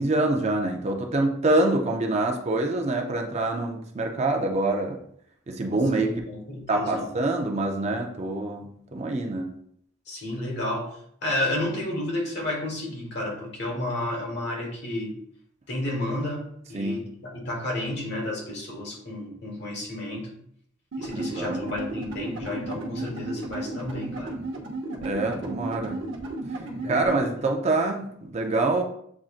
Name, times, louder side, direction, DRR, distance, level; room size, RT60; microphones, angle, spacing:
voice 1, 0.0-5.0 5.5-6.1 6.7-9.6 16.7-17.1 21.1-21.6 25.0-26.0 26.8-28.8, right 2 dB, 35° right, 3 dB, 0.4 m, -26 dB
voice 2, 6.0-7.1 10.1-15.2 15.7-20.3 21.0-24.4 26.6-27.3, left 1 dB, 55° left, -1 dB, 1.3 m, -31 dB
sound 1, 20.9-27.3, right 2 dB, 65° right, 0.8 m, -34 dB
7.1 x 2.5 x 2.4 m, 0.68 s
head